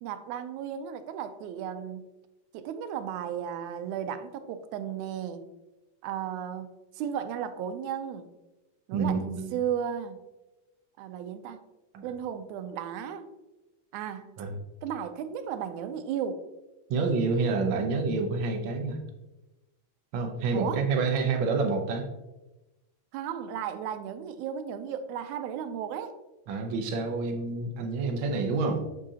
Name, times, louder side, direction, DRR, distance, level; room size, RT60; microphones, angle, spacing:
voice 1, 0.0-2.1 2.5-5.5 6.0-6.7 7.0-8.3 8.9-10.2 11.0-11.6 12.0-13.3 13.9-14.4 14.8-16.5 20.5-20.8 23.1-26.2, right 8 dB, 90° right, 10 dB, 2.0 m, -34 dB
voice 2, 8.9-9.5 11.9-12.1 14.4-14.5 16.9-19.0 20.1-22.1 26.5-28.8, right 4 dB, 70° right, 3 dB, 1.1 m, -28 dB
6.3 x 6.3 x 2.8 m, 1.0 s
omnidirectional pair, 3.3 m